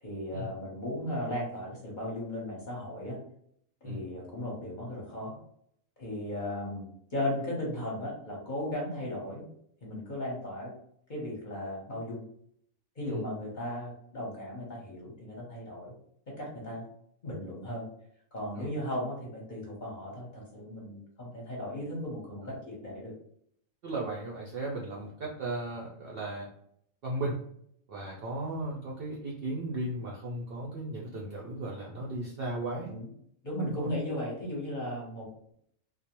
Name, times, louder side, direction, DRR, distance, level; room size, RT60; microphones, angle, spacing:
voice 1, 0.0-3.2 3.8-5.4 6.0-9.5 9.8-10.7 11.1-12.2 13.0-15.9 16.3-16.9 17.2-17.8 18.3-23.1 32.8-33.1 33.4-35.5, left 1 dB, 40° left, -4 dB, 0.8 m, -36 dB
voice 2, 23.8-26.5 27.0-27.4 27.9-32.9 33.7-33.9, right 1 dB, 65° right, -3 dB, 0.6 m, -36 dB
2.4 x 2.0 x 2.9 m, 0.69 s
omnidirectional pair, 1.4 m